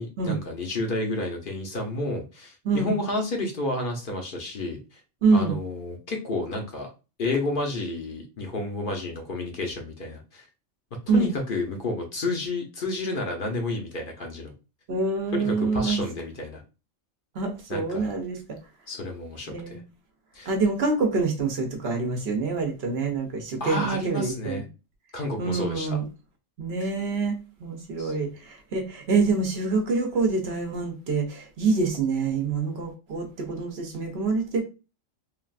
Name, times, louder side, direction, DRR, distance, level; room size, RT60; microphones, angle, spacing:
voice 1, 0.0-5.0 5.3-6.9 7.2-10.4 11.1-14.5 15.3-16.6 17.7-18.1 18.9-19.8 20.3-20.5 23.6-24.6 25.1-26.0 26.8-26.9 28.0-28.1, left 2 dB, 50° left, 0.8 m, -30 dB
voice 2, 5.2-5.5 11.1-11.3 14.9-16.0 17.4-18.4 19.5-19.8 20.5-24.6 25.4-26.1 26.6-34.6, right 4 dB, 60° right, 0.9 m, -26 dB
3.2 x 2.4 x 2.4 m
omnidirectional pair, 1.3 m